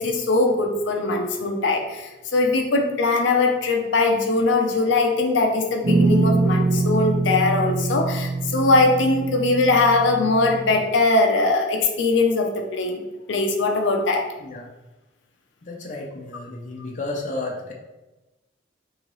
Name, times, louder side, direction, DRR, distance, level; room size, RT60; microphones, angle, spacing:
voice 1, 0.0-13.0 13.3-14.3, left 3 dB, 85° left, 2 dB, 0.6 m, -21 dB
sound 1, 5.8-10.9, right 3 dB, 60° right, 0.5 m, -23 dB
voice 2, 15.6-17.7, left 2 dB, 40° left, 0 dB, 0.5 m, -32 dB
3.1 x 2.8 x 3.8 m, 1.1 s
head